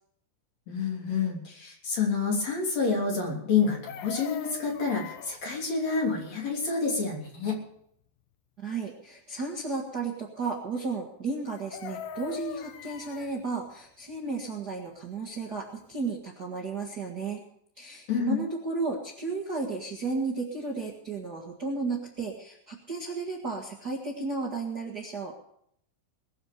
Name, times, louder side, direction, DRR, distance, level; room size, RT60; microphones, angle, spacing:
voice 1, 0.7-7.6 18.1-18.4, left 5 dB, 40° left, -1 dB, 4.0 m, -28 dB
Chicken rooster, 3.6-5.4 11.5-13.3 15.5-15.6 15.9-16.2, left 10 dB, 75° left, 2.0 m, -41 dB
voice 2, 8.6-17.4 17.8-25.3, right 3 dB, 85° right, -1 dB, 0.8 m, -33 dB
20.5 x 7.4 x 6.7 m, 0.71 s
omnidirectional pair, 5.0 m